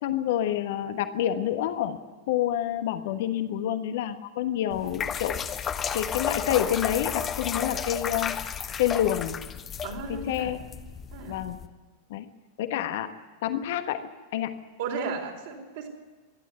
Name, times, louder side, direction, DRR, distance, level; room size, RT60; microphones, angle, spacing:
voice 1, 0.0-5.4 5.9-8.4 8.8-9.4 10.1-10.6 11.3-11.6 12.1-12.3 12.6-13.1 13.4-14.6, left 11 dB, 55° left, 9 dB, 1.3 m, -28 dB
sound 1, 4.7-11.7, left 7 dB, 25° left, 1.2 m, -33 dB
voice 2, 9.8-10.5 11.1-11.4 14.8-15.9, right 4 dB, 55° right, 3 dB, 4.4 m, -34 dB
24.5 x 11.5 x 9.3 m, 1.3 s
figure-of-eight pair, 90°, 0 cm